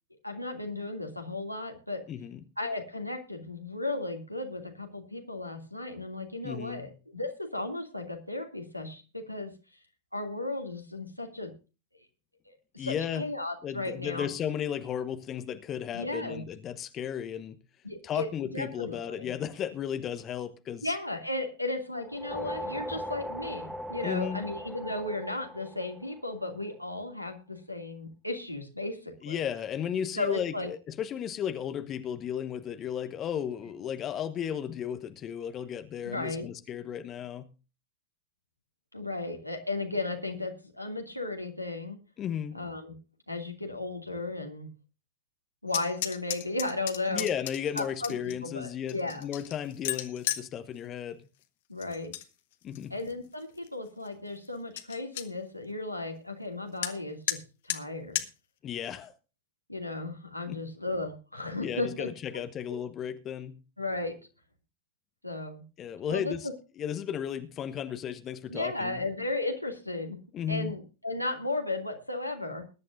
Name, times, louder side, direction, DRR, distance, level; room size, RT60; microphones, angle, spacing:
voice 1, 0.2-2.0 2.6-9.5 10.1-11.5 12.5-14.3 15.9-16.4 17.8-18.3 18.5-19.3 20.8-29.5 30.1-30.7 36.0-36.5 38.9-42.0 42.5-42.9 43.3-44.7 45.6-47.3 47.8-49.3 51.7-52.1 52.9-58.2 59.7-62.1 63.8-64.1 65.2-65.6 66.1-66.5 68.5-70.2 70.5-72.7, left 2 dB, 90° left, 2.7 m, -35 dB
voice 2, 2.1-2.4 6.4-6.9 12.8-13.2 13.6-17.6 18.0-21.0 24.0-24.4 29.2-37.5 42.2-42.6 47.1-51.2 52.6-52.9 58.6-59.1 60.5-60.6 61.6-63.6 65.8-66.5 66.8-69.0 70.3-70.7, left 9 dB, 30° left, 1.1 m, -34 dB
sound 1, 22.0-26.6, equal, ahead, 1.3 m, -39 dB
sound 2, 45.7-48.3 48.9-50.5 51.8-52.2 52.6-53.1 53.6-53.7 54.0-54.1 54.4-54.5 54.8-55.3 56.8-56.9 57.3-57.4 57.7-57.8 58.1-58.3, left 14 dB, 55° left, 1.4 m, -34 dB
21.0 x 11.0 x 2.7 m
figure-of-eight pair, 90°, 0 cm